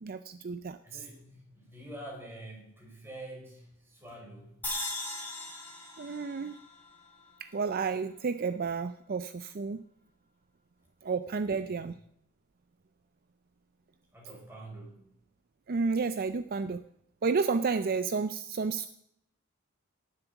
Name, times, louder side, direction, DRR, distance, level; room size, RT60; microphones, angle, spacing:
voice 1, 0.0-1.1 6.0-6.6 7.4-9.8 11.0-12.0 15.7-16.8 17.2-18.9, right 4 dB, 45° right, 12 dB, 0.5 m, -31 dB
voice 2, 0.8-4.6 11.3-11.9 14.1-15.1, right 1 dB, 10° right, -1 dB, 5.1 m, -47 dB
sound 1, 4.6-7.9, left 2 dB, 10° left, 4.5 m, -39 dB
17.0 x 7.8 x 7.0 m, 0.73 s
head